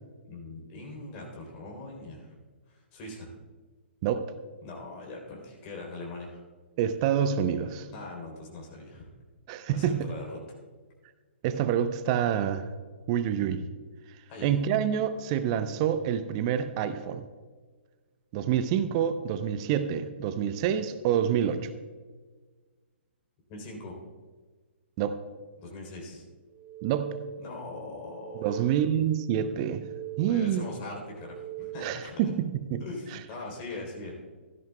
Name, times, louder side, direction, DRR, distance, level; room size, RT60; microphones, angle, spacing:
voice 1, 0.3-2.3 2.7-3.3 4.6-6.4 7.9-9.1 9.7-10.4 14.3-14.6 23.5-24.0 25.6-26.2 27.4-28.7 30.3-32.2 32.8-34.2, left 2 dB, 30° left, -1 dB, 3.5 m, -41 dB
voice 2, 6.8-7.9 9.5-10.1 11.4-12.7 13.1-13.6 14.4-17.2 18.3-21.7 25.0-25.2 26.8-27.2 28.4-29.9 30.2-30.7 31.8-32.8, right 9 dB, 30° right, 11 dB, 0.6 m, -27 dB
sound 1, 26.5-27.6 28.0-29.1 29.5-30.6 31.1-32.2, right 9 dB, 15° right, 3.6 m, -42 dB
16.0 x 13.0 x 2.3 m, 1.4 s
figure-of-eight pair, 125°, 6 cm